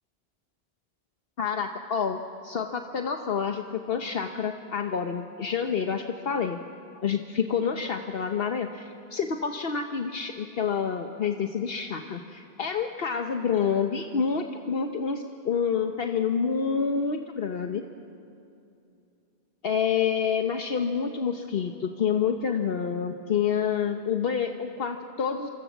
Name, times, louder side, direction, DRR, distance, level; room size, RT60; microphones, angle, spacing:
voice 1, 1.4-6.6 7.0-17.8 19.6-25.5, left 6 dB, 65° left, 5 dB, 1.2 m, -28 dB
27.0 x 25.5 x 7.2 m, 2.6 s
omnidirectional pair, 1.1 m